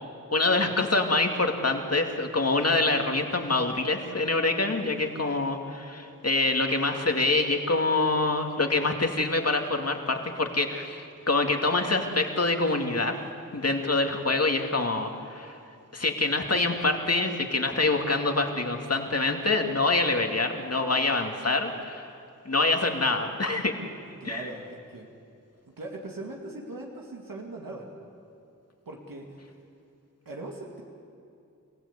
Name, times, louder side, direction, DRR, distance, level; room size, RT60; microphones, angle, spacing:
voice 1, 0.3-13.2 13.5-15.6 15.9-22.1 22.5-23.7 24.2-24.5, left 3 dB, 50° left, 4 dB, 2.4 m, -25 dB
voice 2, 24.0-25.1 25.6-27.9 28.9-29.3 30.3-30.8, right 2 dB, 90° right, -1 dB, 2.4 m, -40 dB
27.0 x 16.5 x 8.4 m, 2.5 s
wide cardioid pair, 55°, 33 cm